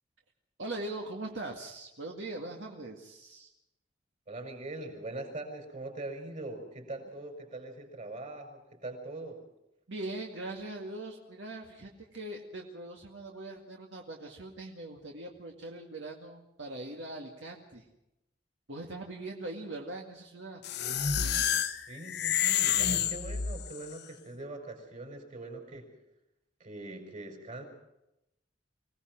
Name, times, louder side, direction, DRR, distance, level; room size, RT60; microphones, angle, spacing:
voice 1, 0.6-3.5 9.9-17.8 18.7-20.6, right 2 dB, 75° right, 0 dB, 2.1 m, -41 dB
voice 2, 4.3-9.4 21.9-25.9 26.6-27.6, right 2 dB, 45° right, 4 dB, 5.1 m, -42 dB
sound 1, 20.6-23.9, left 9 dB, 60° left, 1.1 m, -29 dB
25.0 x 17.5 x 6.0 m, 0.87 s
head